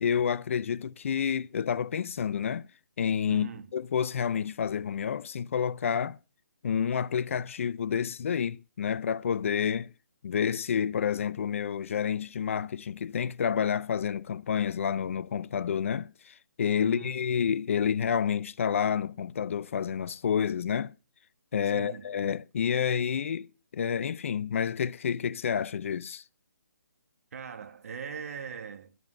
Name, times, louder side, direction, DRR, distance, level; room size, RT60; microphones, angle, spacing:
voice 1, 0.0-2.7 3.0-6.2 6.6-9.9 10.2-20.9 21.5-26.2, left 7 dB, 45° left, 0.5 m, -29 dB
voice 2, 3.3-3.7 16.8-17.1 21.7-22.1 27.3-29.0, right 6 dB, 50° right, 1.6 m, -40 dB
12.5 x 7.9 x 6.3 m
hypercardioid pair, 160°, 10 cm